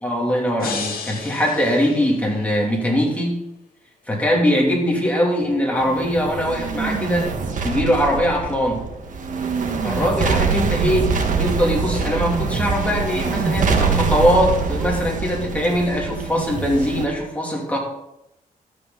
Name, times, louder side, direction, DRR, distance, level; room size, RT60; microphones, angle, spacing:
voice 1, 0.0-3.4 4.1-7.3 7.6-8.8 9.8-11.1 11.4-17.8, equal, 10° left, -2 dB, 2.9 m, -21 dB
sound 1, 0.6-2.7, left 5 dB, 75° left, 2.0 m, -33 dB
sound 2, 5.8-17.1, right 5 dB, 60° right, 1.6 m, -24 dB
12.5 x 8.4 x 4.1 m, 0.85 s
cardioid pair, 115°, 15 cm